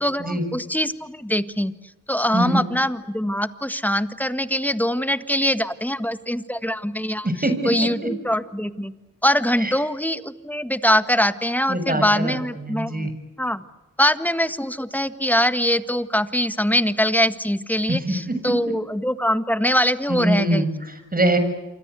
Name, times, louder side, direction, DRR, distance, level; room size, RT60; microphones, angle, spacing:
voice 1, 0.0-1.7 2.1-7.3 7.7-8.9 9.2-13.1 13.4-13.6 14.0-20.7, equal, 5° left, 11 dB, 1.7 m, -23 dB
voice 2, 2.3-2.6 7.2-8.1 9.6-9.7 11.7-13.1 17.9-18.6 20.1-21.4, right 1 dB, 25° right, 9 dB, 6.8 m, -24 dB
28.0 x 25.0 x 8.4 m, 1.1 s
cardioid pair, 60°, 32 cm